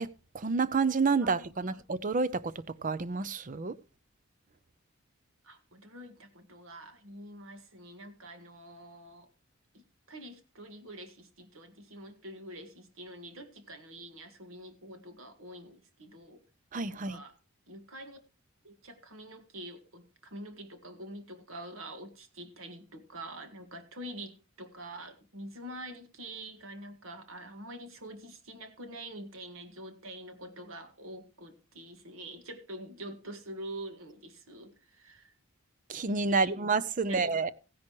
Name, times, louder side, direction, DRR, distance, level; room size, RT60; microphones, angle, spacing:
voice 1, 0.0-3.8 16.7-17.2 35.9-37.5, right 4 dB, 35° right, 0.6 m, -29 dB
voice 2, 1.2-1.8 5.4-9.3 9.7-16.4 16.9-17.4 17.7-18.2 18.6-35.3 36.3-36.5 37.0-37.5, right 1 dB, 70° right, 1.8 m, -46 dB
15.5 x 10.5 x 3.1 m
head